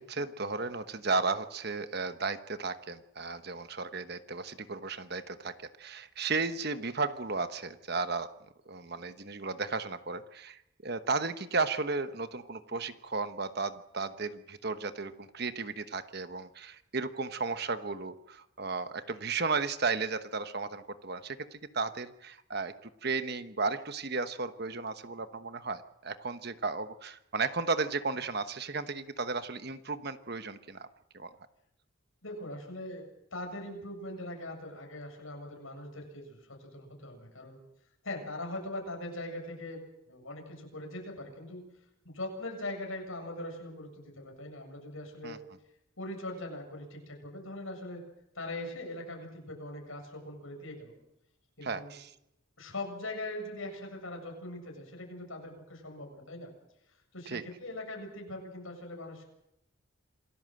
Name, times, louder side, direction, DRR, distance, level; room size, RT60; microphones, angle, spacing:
voice 1, 0.0-8.3 8.7-22.7 23.0-30.9 31.1-31.3 45.2-45.4 51.6-52.1 57.3-57.4, right 4 dB, 50° right, 10 dB, 1.1 m, -34 dB
voice 2, 32.2-37.6 38.0-41.7 42.0-45.4 46.0-48.0 48.3-50.9 51.6-51.9 52.6-56.5 57.1-59.3, left 1 dB, 70° left, 2 dB, 7.4 m, -41 dB
27.5 x 18.0 x 7.8 m, 0.83 s
head